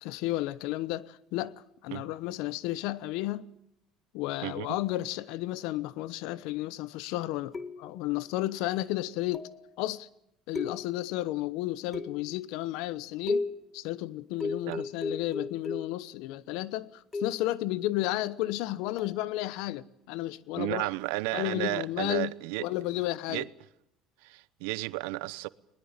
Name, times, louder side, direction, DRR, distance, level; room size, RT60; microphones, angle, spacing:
voice 1, 0.0-1.5 1.8-3.4 4.1-9.5 9.8-10.1 10.5-13.4 13.7-20.9 21.3-22.3 22.6-23.4, left 16 dB, 75° left, 0.9 m, -32 dB
sound 1, 7.5-8.1 9.3-9.7 10.5-11.2 11.9-12.4 13.3-13.7 14.4-16.0 17.1-17.5 19.0-19.2, left 3 dB, 20° left, 1.9 m, -35 dB
voice 2, 20.6-22.7 23.3-23.5 24.2-25.5, right 22 dB, 85° right, 0.8 m, -33 dB
20.5 x 20.0 x 8.9 m
supercardioid pair, 110°, 0 cm